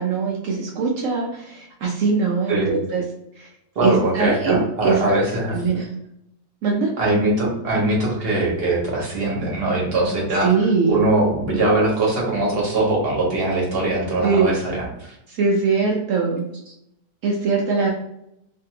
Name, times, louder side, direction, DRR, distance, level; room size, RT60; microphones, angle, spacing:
voice 1, 0.0-3.0 3.4-3.5 3.8-5.0 5.5-5.9 6.6-6.9 10.4-11.0 14.2-14.5 15.3-16.5 17.2-17.9, right 4 dB, 75° right, -1 dB, 0.7 m, -21 dB
voice 2, 3.7-5.6 7.0-10.5 10.9-15.1, right 2 dB, 45° right, -3 dB, 0.9 m, -21 dB
2.7 x 2.5 x 2.7 m, 0.80 s
omnidirectional pair, 1.9 m